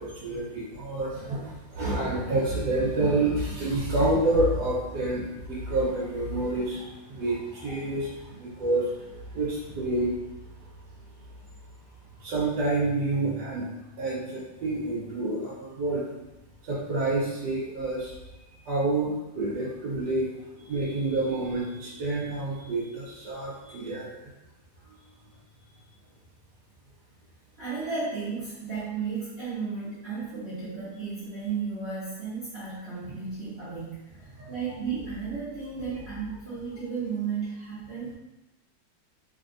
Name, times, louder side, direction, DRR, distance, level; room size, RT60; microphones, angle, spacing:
voice 1, 0.0-10.1 12.2-13.6 14.0-16.1 16.6-18.1 18.6-20.3 20.6-24.1 34.4-34.6, right 2 dB, 65° right, -7 dB, 1.4 m, -28 dB
voice 2, 27.6-34.0 34.5-38.1, right 5 dB, 45° right, -12 dB, 1.0 m, -34 dB
3.4 x 2.7 x 2.5 m, 0.99 s
omnidirectional pair, 2.0 m